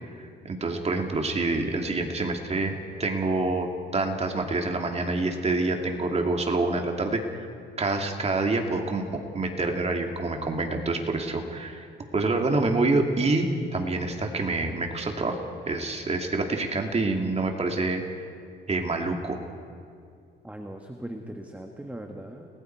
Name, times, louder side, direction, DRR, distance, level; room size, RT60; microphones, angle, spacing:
voice 1, 0.2-3.7 3.9-7.5 7.8-11.9 12.1-13.5 13.7-18.0 18.7-19.4, right 3 dB, 30° right, 3 dB, 2.5 m, -27 dB
voice 2, 20.4-22.5, right 1 dB, 5° right, 4 dB, 1.5 m, -39 dB
30.0 x 20.0 x 4.7 m, 2.3 s
cardioid pair, 90°, 20 cm